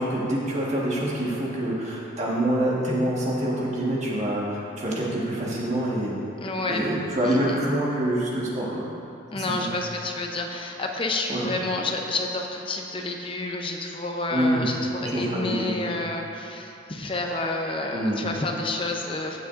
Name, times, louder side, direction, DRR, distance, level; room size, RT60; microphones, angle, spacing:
voice 1, 0.0-6.1 6.7-8.8 9.3-9.7 11.3-11.5 14.3-14.7 15.0-15.9 17.9-18.2, right 1 dB, 35° right, -5 dB, 1.5 m, -26 dB
voice 2, 6.4-7.6 9.3-19.4, left 2 dB, 25° left, 2 dB, 0.7 m, -29 dB
15.0 x 7.1 x 2.6 m, 2.8 s
head